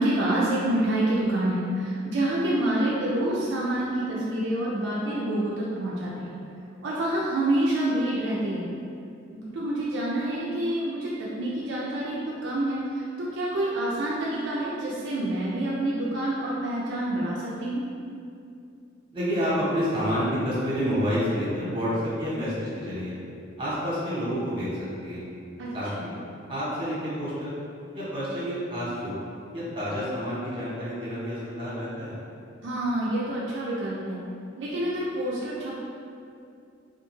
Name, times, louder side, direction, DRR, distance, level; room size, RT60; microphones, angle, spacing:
voice 1, 0.0-6.4 6.8-8.7 9.3-17.8 25.6-25.7 32.6-34.2 34.6-35.8, right 1 dB, 65° right, -6 dB, 0.3 m, -27 dB
voice 2, 19.1-23.1 23.6-25.2 25.7-26.2 26.5-27.5 27.9-29.1 29.5-32.1, equal, 25° right, -9 dB, 0.8 m, -29 dB
2.4 x 2.2 x 3.0 m, 2.5 s
head